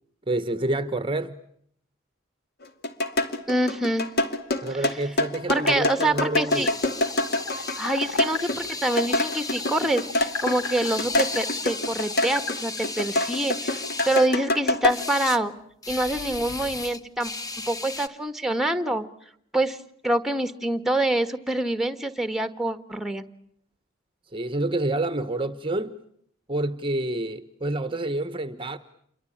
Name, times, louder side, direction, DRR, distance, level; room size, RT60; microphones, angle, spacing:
voice 1, 0.3-1.4 4.6-6.7 24.3-26.0 26.5-28.8, right 2 dB, 25° right, 12 dB, 1.1 m, -28 dB
sound 1, 2.6-12.6 12.8-14.9, left 2 dB, 50° left, 2.4 m, -25 dB
voice 2, 3.5-4.1 4.7-4.8 5.5-6.7 7.5-15.5 15.9-17.3 17.7-19.0 19.5-19.8 20.0-23.2, right 1 dB, ahead, 10 dB, 1.5 m, -26 dB
sound 2, 5.5-12.9, left 5 dB, 80° left, 1.5 m, -37 dB
sound 3, 6.5-14.3 14.9-15.4 15.8-18.1, left 3 dB, 20° left, 1.2 m, -35 dB
29.0 x 23.5 x 8.7 m, 0.68 s
head